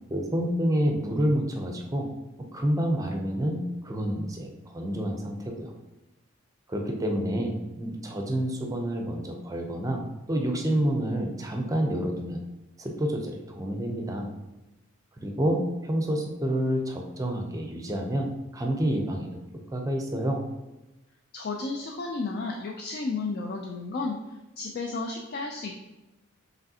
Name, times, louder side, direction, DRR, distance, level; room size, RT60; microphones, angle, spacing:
voice 1, 0.1-2.1 2.5-5.7 6.7-12.4 12.8-14.3 15.2-19.4 19.7-20.4, right 1 dB, 15° right, 2 dB, 0.5 m, -28 dB
voice 2, 21.3-24.2 24.6-25.7, left 3 dB, 50° left, 1 dB, 0.4 m, -32 dB
5.0 x 3.1 x 2.7 m, 1.0 s
head